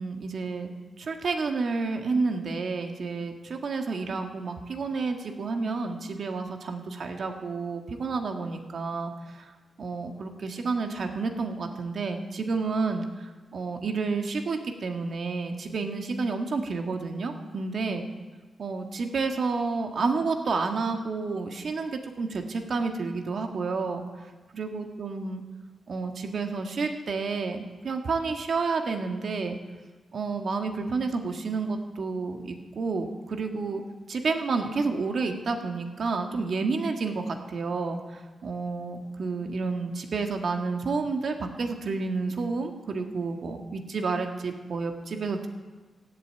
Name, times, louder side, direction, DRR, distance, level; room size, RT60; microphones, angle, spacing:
voice 1, 0.0-9.1 9.8-18.1 18.6-24.0 24.5-25.4 25.9-29.6 30.1-33.8 34.1-45.5, right 4 dB, 60° right, 4 dB, 1.7 m, -30 dB
16.0 x 8.2 x 9.1 m, 1.3 s
wide cardioid pair, 110°, 0 cm